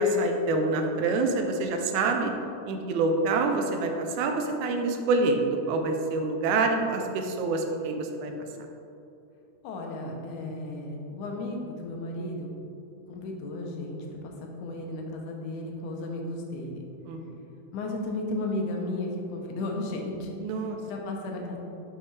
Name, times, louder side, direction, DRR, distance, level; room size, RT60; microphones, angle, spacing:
voice 1, 0.0-2.3 2.7-8.3 17.0-17.2 20.4-20.8, right 3 dB, 80° right, 4 dB, 1.8 m, -26 dB
voice 2, 9.6-12.5 13.1-14.3 14.6-16.7 17.7-20.4 20.9-21.6, left 2 dB, 80° left, 1 dB, 2.2 m, -34 dB
6.3 x 5.6 x 3.2 m, 2.6 s
omnidirectional pair, 3.6 m